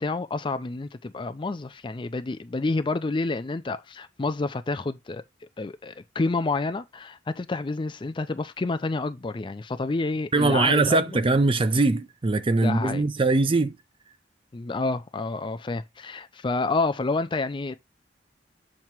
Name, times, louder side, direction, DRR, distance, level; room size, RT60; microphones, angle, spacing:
voice 1, 0.0-5.2 5.6-11.2 12.6-13.1 14.5-17.8, left 3 dB, 25° left, 0.4 m, -29 dB
voice 2, 10.3-13.7, right 3 dB, 30° right, 0.5 m, -22 dB
7.3 x 2.9 x 4.5 m
head